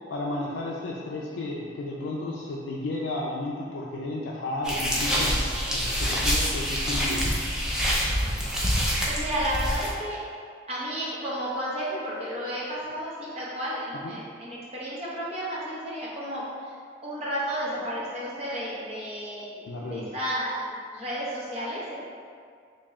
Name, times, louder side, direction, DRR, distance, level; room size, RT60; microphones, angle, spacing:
voice 1, 0.1-5.4 5.7-7.4 14.0-14.1 19.7-20.1, left 2 dB, 90° left, -5 dB, 0.4 m, -33 dB
sound 1, 4.6-9.9, equal, 5° right, 0.4 m, -26 dB
voice 2, 8.8-10.2 10.7-16.7 17.0-20.6 20.9-22.0, equal, 30° right, -8 dB, 0.8 m, -32 dB
3.1 x 2.8 x 3.5 m, 2.2 s
head